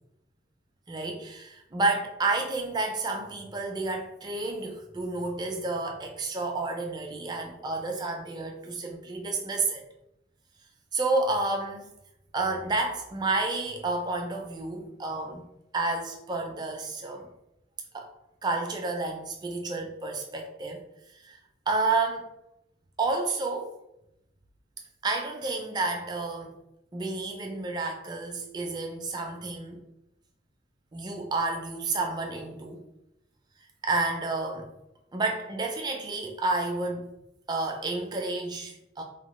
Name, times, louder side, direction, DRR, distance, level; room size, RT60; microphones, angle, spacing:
voice 1, 0.9-9.8 10.9-11.9 12.3-15.5 15.7-17.3 17.9-18.1 18.4-20.8 21.2-21.4 21.7-22.3 23.0-23.7 25.0-26.6 26.9-29.8 30.9-32.8 33.8-34.7 35.1-37.1 37.5-39.0, right 3 dB, 20° right, 2 dB, 0.3 m, -30 dB
2.9 x 2.1 x 3.0 m, 0.86 s
head